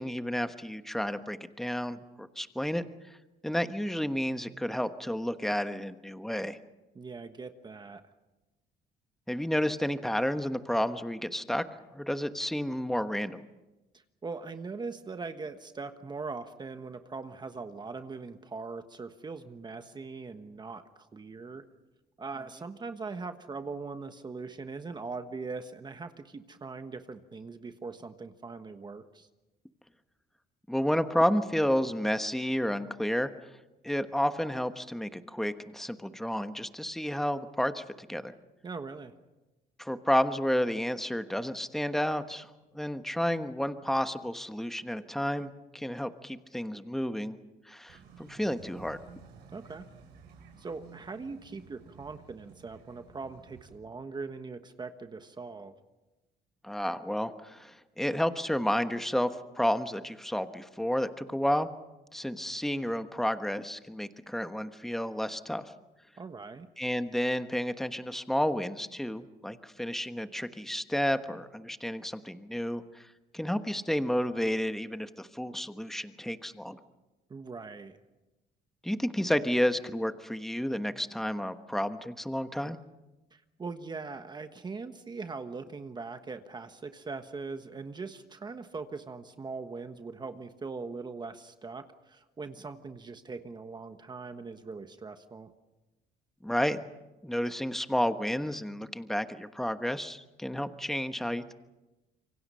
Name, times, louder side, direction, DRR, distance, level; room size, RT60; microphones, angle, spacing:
voice 1, 0.0-2.8 3.4-6.6 9.3-11.6 11.9-13.4 30.7-33.3 33.8-38.3 39.8-47.4 47.6-49.0 56.6-59.3 59.6-61.7 62.1-65.7 66.8-76.8 78.8-82.8 96.4-96.8 97.2-101.5, equal, ahead, 9 dB, 1.2 m, -31 dB
voice 2, 6.9-8.0 13.9-21.6 22.2-29.3 38.6-39.1 49.5-49.9 50.6-55.7 66.2-66.7 77.3-78.0 83.3-95.5, right 4 dB, 25° right, 8 dB, 1.3 m, -41 dB
sound 1, 47.9-53.8, right 6 dB, 80° right, 6.3 m, -54 dB
27.0 x 24.0 x 5.6 m, 1.1 s
cardioid pair, 110°, 17 cm